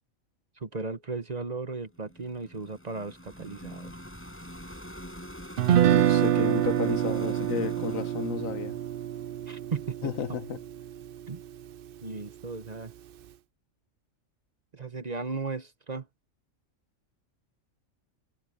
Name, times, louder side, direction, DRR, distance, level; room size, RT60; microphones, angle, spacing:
voice 1, 0.6-3.9 9.5-10.4 11.3-11.4 12.0-12.9 14.7-16.1, right 4 dB, 35° right, 1.0 m, -36 dB
sound 1, 1.9-10.0, equal, 10° left, 7.3 m, -45 dB
Guitar, 5.6-11.7, right 11 dB, 60° right, 0.6 m, -26 dB
voice 2, 5.9-8.8 10.0-10.6, left 7 dB, 90° left, 1.5 m, -32 dB
omnidirectional pair, 1.3 m